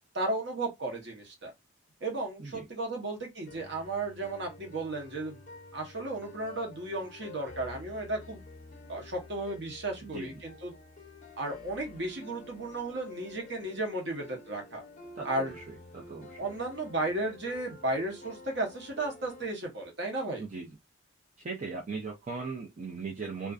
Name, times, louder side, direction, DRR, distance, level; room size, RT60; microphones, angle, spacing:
voice 1, 0.1-1.5 2.0-5.4 5.7-8.4 8.9-10.7 11.4-14.8 15.2-15.5 16.4-20.4, right 2 dB, 55° right, 0.9 m, -34 dB
sound 1, 3.5-19.5, left 2 dB, 35° left, 0.5 m, -49 dB
voice 2, 10.0-10.3 15.2-16.5 20.4-20.7 21.4-23.5, right 4 dB, 35° right, 0.4 m, -39 dB
2.5 x 2.3 x 2.3 m
head